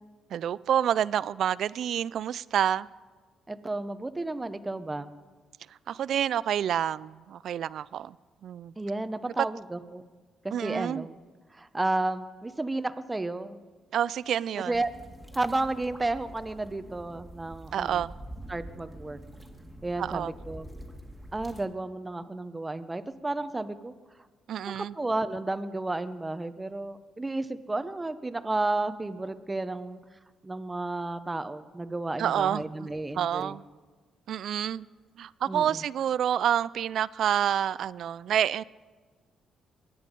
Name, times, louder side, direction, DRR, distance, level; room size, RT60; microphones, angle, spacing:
voice 1, 0.3-2.9 5.9-8.2 8.4-8.7 10.5-11.1 13.9-14.8 17.7-18.1 20.0-20.3 24.5-24.9 32.2-32.6 33.2-33.6 34.3-34.9 35.2-38.6, right 10 dB, 70° right, 0.3 m, -28 dB
voice 2, 3.5-5.1 8.8-10.1 10.4-11.2 11.5-13.6 14.7-14.9 15.3-18.0 18.5-19.2 19.8-20.7 21.3-23.9 24.7-30.0 30.4-33.6 35.5-35.8, right 2 dB, 15° right, 0.8 m, -32 dB
sound 1, 14.7-21.7, right 1 dB, ahead, 1.9 m, -46 dB
22.5 x 9.7 x 5.3 m
cardioid pair, 90°, 0 cm